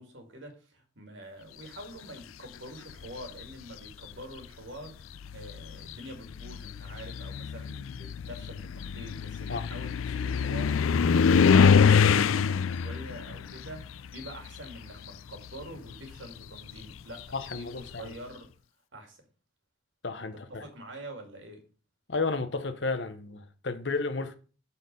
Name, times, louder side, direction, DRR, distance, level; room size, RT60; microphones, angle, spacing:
voice 1, 0.0-11.2 11.5-18.5 18.9-19.3 20.5-21.7, right 1 dB, 70° right, 2.4 m, -46 dB
sound 1, 2.9-3.4 4.4-4.5 5.1-15.0 15.3-17.9, left 6 dB, 85° left, 0.4 m, -25 dB
voice 2, 17.3-18.1 20.0-20.6 22.1-24.4, left 3 dB, 60° left, 0.9 m, -32 dB
11.0 x 4.3 x 5.4 m
head